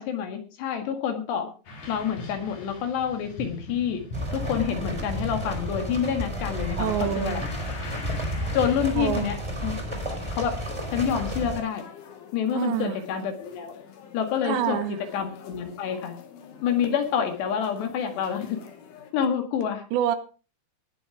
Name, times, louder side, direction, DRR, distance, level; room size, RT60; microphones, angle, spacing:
voice 1, 0.0-1.5 1.9-4.0 4.3-7.5 8.5-9.4 9.6-10.6 10.9-11.9 12.3-13.7 14.1-16.1 16.6-18.6 19.1-19.8, left 8 dB, 70° left, 6 dB, 4.0 m, -28 dB
sound 1, 1.7-9.3, left 1 dB, 45° left, 3.8 m, -40 dB
sound 2, 4.1-11.6, equal, 5° right, 3.3 m, -32 dB
voice 2, 6.8-7.4 9.0-9.3 12.5-12.9 14.4-15.0 19.2-19.3 19.9-20.2, right 11 dB, 75° right, 10 dB, 3.3 m, -27 dB
sound 3, 10.6-19.1, left 7 dB, 85° left, 4.6 m, -48 dB
19.5 x 7.3 x 4.8 m, 0.35 s
omnidirectional pair, 5.3 m